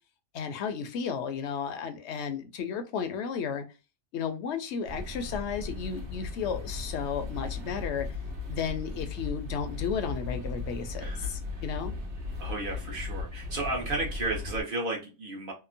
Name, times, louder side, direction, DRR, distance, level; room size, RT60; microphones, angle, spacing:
voice 1, 0.3-3.6 4.1-8.1 8.5-11.9, left 6 dB, 65° left, 0.8 m, -33 dB
sound 1, 4.9-14.6, left 3 dB, 65° right, 1.2 m, -37 dB
voice 2, 11.0-11.3 12.4-15.5, right 2 dB, 45° right, 1.0 m, -33 dB
2.8 x 2.1 x 2.5 m
omnidirectional pair, 1.3 m